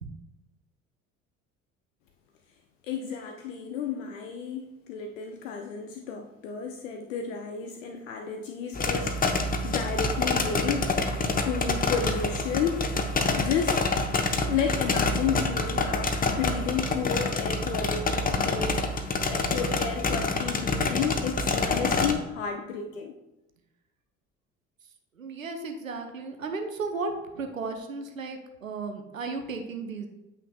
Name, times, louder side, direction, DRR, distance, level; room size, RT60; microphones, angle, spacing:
voice 1, 2.9-10.9 11.5-12.9 13.4-13.8 14.5-18.8 19.2-23.1, left 6 dB, 75° left, 4 dB, 0.7 m, -32 dB
sound 1, 8.7-22.1, left 3 dB, 20° left, 0.9 m, -27 dB
voice 2, 25.2-30.1, right 4 dB, 90° right, 5 dB, 0.8 m, -34 dB
9.8 x 5.8 x 2.3 m, 0.95 s
figure-of-eight pair, 60°, 39 cm